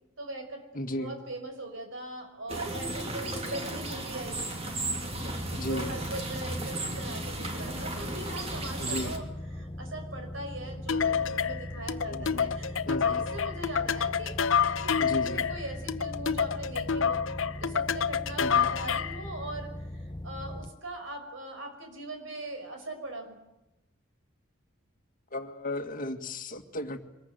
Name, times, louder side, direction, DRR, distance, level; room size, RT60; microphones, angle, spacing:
voice 1, 0.2-0.7 0.9-4.6 5.7-9.3 9.6-17.2 17.6-19.7 20.2-23.4, right 2 dB, 65° right, 5 dB, 5.8 m, -40 dB
voice 2, 0.7-1.2 5.5-6.0 8.8-9.3 12.1-12.6 12.9-13.3 15.0-15.5 18.4-18.7 25.3-27.0, left 1 dB, 40° left, 6 dB, 1.9 m, -35 dB
sound 1, 2.5-9.2, right 2 dB, 30° right, 3.0 m, -35 dB
sound 2, 5.1-20.7, left 1 dB, 20° left, 1.0 m, -40 dB
sound 3, 10.9-19.2, left 7 dB, 70° left, 0.8 m, -28 dB
24.5 x 21.0 x 9.2 m, 0.94 s
head